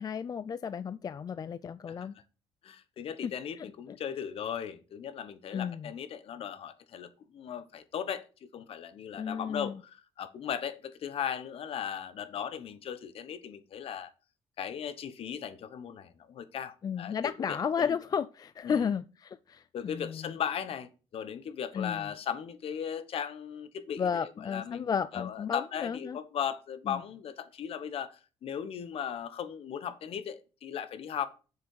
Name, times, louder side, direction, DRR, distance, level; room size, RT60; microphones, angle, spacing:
voice 1, 0.0-2.1 3.2-4.0 5.5-5.9 9.1-9.8 16.8-20.4 21.7-22.1 24.0-26.2 26.9-27.0, left 7 dB, 35° left, 0.4 m, -33 dB
voice 2, 2.6-14.1 14.6-18.0 18.6-18.9 19.7-31.3, left 8 dB, 60° left, 1.1 m, -37 dB
7.3 x 6.7 x 4.8 m
cardioid pair, 90°, 11 cm